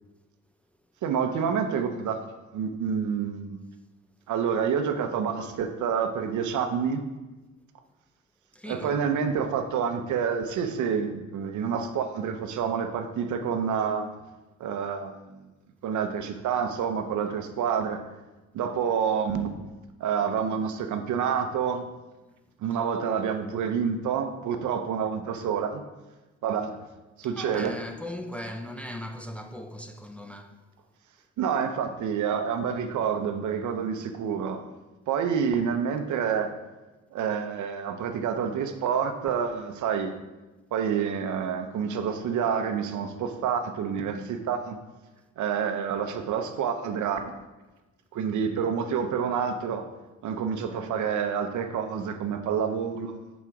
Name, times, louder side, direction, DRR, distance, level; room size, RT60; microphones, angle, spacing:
voice 1, 1.0-3.6 4.3-7.1 8.7-14.1 14.6-15.3 15.8-18.0 18.5-19.5 20.0-21.8 22.6-25.8 26.4-26.8 27.2-27.8 31.4-34.6 35.1-36.5 37.1-40.1 40.7-44.8 45.4-47.3 48.1-49.9 50.2-53.3, right 7 dB, 75° right, 0.8 m, -28 dB
voice 2, 8.5-9.0 22.2-22.3 27.4-30.6, left 1 dB, 5° left, 0.5 m, -38 dB
7.4 x 4.1 x 4.8 m
cardioid pair, 90°, 30 cm